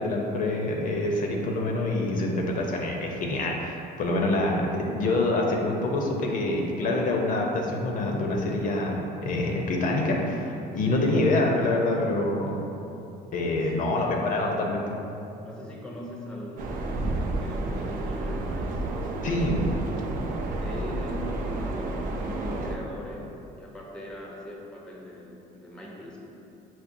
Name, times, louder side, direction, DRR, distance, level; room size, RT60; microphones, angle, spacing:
voice 1, 0.0-12.6 13.3-15.0 19.2-19.6, left 2 dB, 55° left, 0 dB, 0.5 m, -26 dB
voice 2, 10.9-11.3 13.7-14.1 15.4-18.9 20.6-26.2, left 1 dB, 5° left, -2 dB, 0.4 m, -40 dB
sound 1, 16.6-22.8, right 2 dB, 55° right, 0.4 m, -30 dB
5.7 x 2.1 x 2.5 m, 2.7 s
cardioid pair, 110°, 17 cm